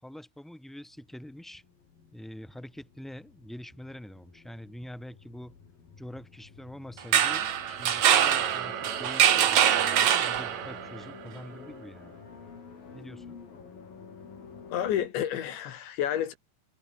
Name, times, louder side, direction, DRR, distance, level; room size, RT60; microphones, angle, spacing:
voice 1, 0.0-1.6 2.1-5.5 6.0-12.1 12.9-13.4, equal, ahead, 7.0 m, -45 dB
sound 1, 0.9-15.1, left 5 dB, 50° left, 6.4 m, -50 dB
sound 2, 7.0-10.9, right 10 dB, 55° right, 2.3 m, -23 dB
voice 2, 14.7-16.4, left 10 dB, 75° left, 4.4 m, -30 dB
omnidirectional pair, 5.2 m